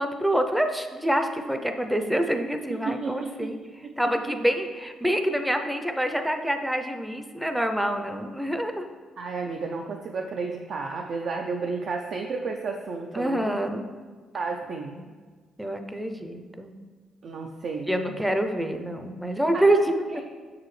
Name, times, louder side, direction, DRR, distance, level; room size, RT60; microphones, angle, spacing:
voice 1, 0.0-3.6 4.0-8.9 13.1-13.8 14.9-15.1 15.6-16.7 17.9-20.2, right 1 dB, 5° right, 6 dB, 0.5 m, -26 dB
voice 2, 2.8-3.5 9.2-13.6 14.3-15.0 17.2-18.1 19.5-19.8 20.1-20.2, right 4 dB, 60° right, 2 dB, 0.4 m, -32 dB
6.4 x 4.8 x 3.1 m, 1.5 s
cardioid pair, 90°, 0 cm